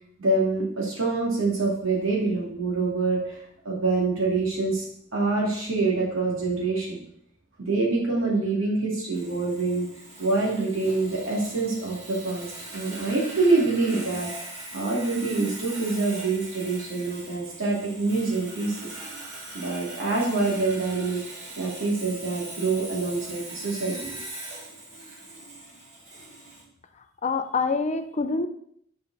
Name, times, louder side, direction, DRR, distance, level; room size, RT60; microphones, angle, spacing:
voice 1, 0.2-3.4 3.6-4.8 5.1-7.0 7.6-9.9 10.2-14.3 14.7-18.8 19.5-21.2 21.6-24.2, right 3 dB, 70° right, -3 dB, 2.5 m, -26 dB
Sawing, 9.1-26.6, right 2 dB, 35° right, 1.8 m, -41 dB
voice 2, 27.2-28.5, left 4 dB, 35° left, 9 dB, 0.5 m, -26 dB
7.1 x 5.2 x 4.1 m, 0.69 s
head